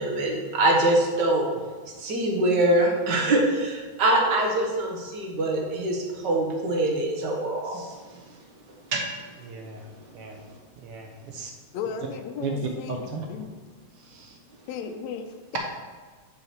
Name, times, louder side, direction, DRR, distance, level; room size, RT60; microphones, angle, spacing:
voice 1, 0.0-1.5 2.0-7.9 8.9-9.0, right 1 dB, 50° right, 0 dB, 1.3 m, -24 dB
voice 2, 9.4-10.4 10.7-11.5 12.4-13.5 13.9-14.4, right 3 dB, 70° right, 2 dB, 1.3 m, -35 dB
voice 3, 11.7-13.6 14.7-15.6, left 6 dB, 80° left, 6 dB, 1.9 m, -35 dB
8.8 x 5.6 x 4.5 m, 1.4 s
omnidirectional pair, 3.3 m